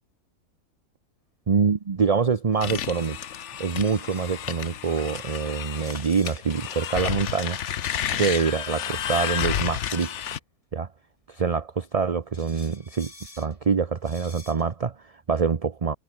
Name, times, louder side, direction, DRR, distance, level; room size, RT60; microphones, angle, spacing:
voice 1, 1.5-3.2 3.6-7.6 8.1-10.1 10.7-10.9 11.3-13.1 13.4-16.0, right 5 dB, 35° right, 0.6 m, -25 dB
sound 1, 2.5-4.4 4.8-4.9 5.2-6.6 7.9-10.3 11.8-11.9 12.3-13.6 14.0-14.7, left 2 dB, 20° left, 3.2 m, -50 dB
sound 2, 2.6-10.4, left 10 dB, 55° left, 1.0 m, -31 dB
omnidirectional pair, 1.7 m